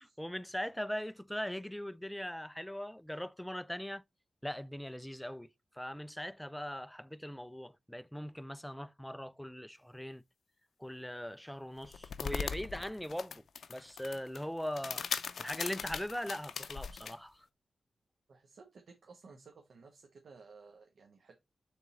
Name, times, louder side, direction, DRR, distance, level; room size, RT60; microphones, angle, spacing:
voice 1, 0.2-4.0 4.4-5.5 5.7-10.2 10.8-13.4 13.7-15.0 15.4-17.5, equal, 5° left, 0.3 m, -40 dB
sound 1, 11.8-17.1, left 6 dB, 80° left, 0.5 m, -40 dB
voice 2, 18.3-21.4, right 4 dB, 75° right, 1.1 m, -56 dB
7.0 x 3.6 x 4.1 m
wide cardioid pair, 110°, 0 cm